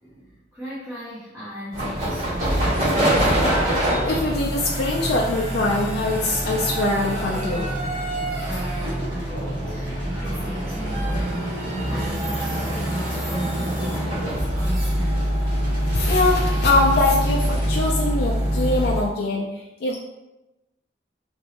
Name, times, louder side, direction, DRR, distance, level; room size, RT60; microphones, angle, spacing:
voice 1, 0.0-3.6 8.4-15.3, right 1 dB, 10° right, -9 dB, 0.6 m, -36 dB
sound 1, 1.7-19.1, right 1 dB, 50° right, 1.3 m, -25 dB
sound 2, 2.5-17.9, equal, 75° right, 1.5 m, -37 dB
voice 2, 4.0-7.7 15.9-20.0, left 2 dB, 60° left, -2 dB, 0.3 m, -23 dB
3.0 x 2.6 x 2.8 m, 0.98 s
head